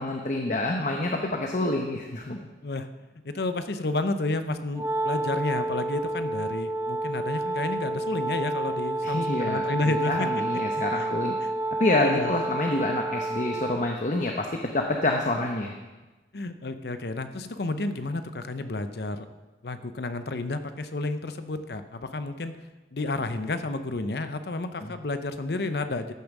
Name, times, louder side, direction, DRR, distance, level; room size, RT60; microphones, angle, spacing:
voice 1, 0.0-2.4 9.0-11.4 11.8-14.5 14.7-15.7 24.8-24.9, left 2 dB, 45° left, 2 dB, 0.9 m, -27 dB
voice 2, 3.2-10.4 10.7-11.1 11.4-11.5 12.0-12.3 16.3-19.3 19.6-22.5 22.9-26.1, left 2 dB, 70° left, 10 dB, 0.7 m, -31 dB
Wind instrument woodwind instrument, 4.7-14.0, right 2 dB, 15° right, 0.4 m, -29 dB
14.5 x 7.1 x 6.1 m, 1.2 s
head